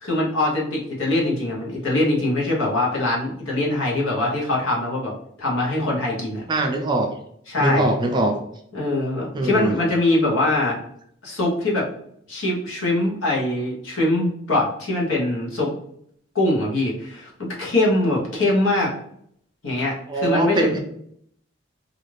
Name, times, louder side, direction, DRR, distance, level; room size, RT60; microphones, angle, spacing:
voice 1, 0.0-5.1 5.4-6.4 7.5-7.9 8.7-10.8 11.2-11.9 12.3-15.7 16.3-18.9 19.6-20.8, left 2 dB, 85° left, -3 dB, 0.9 m, -22 dB
voice 2, 6.5-7.1 7.6-8.4 9.3-9.7 20.1-20.8, right 2 dB, 20° right, 3 dB, 0.3 m, -22 dB
2.5 x 2.4 x 3.1 m, 0.68 s
head